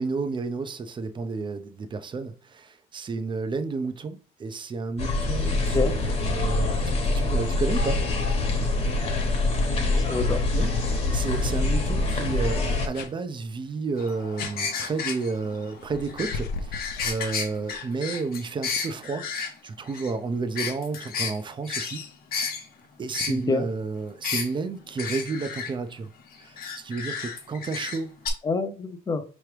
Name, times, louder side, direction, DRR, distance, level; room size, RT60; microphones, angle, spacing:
voice 1, 0.0-8.0 10.5-19.3 19.6-22.0 23.0-26.1 26.4-28.1, right 4 dB, 30° right, 0.5 m, -31 dB
sound 1, 5.0-12.9, left 2 dB, 40° left, 1.1 m, -25 dB
voice 2, 9.7-10.4 23.3-23.7 28.4-29.2, left 3 dB, 20° left, 0.6 m, -27 dB
sound 2, 11.6-11.7 12.0-12.3 12.9-13.1 14.4-14.6 15.8-17.8, left 4 dB, 85° left, 0.6 m, -36 dB
sound 3, 14.0-19.5 19.9-20.1 20.6-21.4 21.7-22.7 23.1-23.4 24.2-24.5 25.0-25.7 26.6-28.0 28.3-28.4, left 5 dB, 65° left, 1.0 m, -32 dB
4.8 x 3.1 x 3.2 m
cardioid pair, 110°, 17 cm